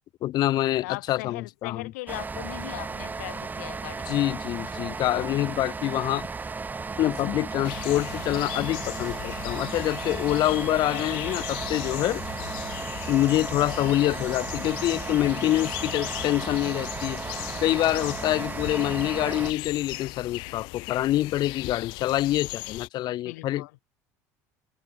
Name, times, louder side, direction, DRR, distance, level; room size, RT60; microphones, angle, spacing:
voice 1, 0.2-1.9 4.1-6.3 7.0-12.2 13.1-23.7, left 14 dB, 60° left, 3.7 m, -26 dB
voice 2, 0.8-4.1 13.8-14.1 18.3-18.7 23.2-23.7, left 21 dB, 90° left, 3.4 m, -39 dB
sound 1, 2.1-19.5, right 4 dB, 20° right, 6.0 m, -35 dB
sound 2, 7.6-22.9, left 26 dB, 75° left, 3.8 m, -38 dB
supercardioid pair, 100°, 8 cm